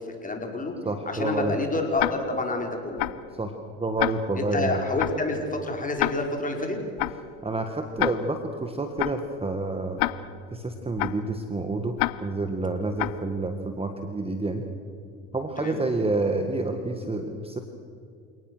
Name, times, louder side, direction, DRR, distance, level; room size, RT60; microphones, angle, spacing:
voice 1, 0.1-0.7 1.0-3.0 4.3-6.8 15.6-15.8, left 2 dB, 20° left, 2 dB, 5.1 m, -28 dB
voice 2, 0.8-1.5 3.4-4.8 7.4-10.0 10.5-14.6 15.3-17.6, right 2 dB, 15° right, 6 dB, 1.8 m, -29 dB
Tick-tock, 2.0-2.5 3.0-3.3 4.0-4.5 5.0-5.3 6.0-6.5 7.0-7.3 8.0-8.5 9.0-9.3 10.0-10.5 11.0-11.3 12.0-12.5 13.0-13.3, left 19 dB, 60° left, 0.9 m, -29 dB
28.5 x 19.0 x 6.3 m, 2.4 s
hypercardioid pair, 80°, 39 cm